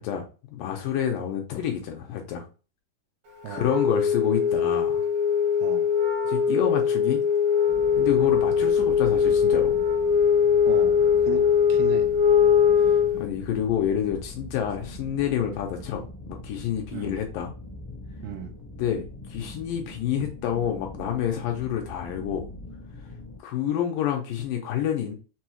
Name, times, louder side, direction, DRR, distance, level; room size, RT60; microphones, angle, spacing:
voice 1, 0.0-2.4 3.5-5.0 6.3-7.2 8.0-9.8 13.2-17.5 18.8-22.5 23.4-25.1, left 9 dB, 80° left, 2.2 m, -28 dB
Wind instrument woodwind instrument, 3.5-13.3, left 7 dB, 60° right, 1.5 m, -21 dB
sound 1, 7.7-23.4, left 1 dB, 60° left, 1.5 m, -42 dB
voice 2, 10.7-12.1 16.9-17.2 18.2-18.6, right 8 dB, 80° right, 2.5 m, -36 dB
6.1 x 2.3 x 2.9 m
omnidirectional pair, 4.2 m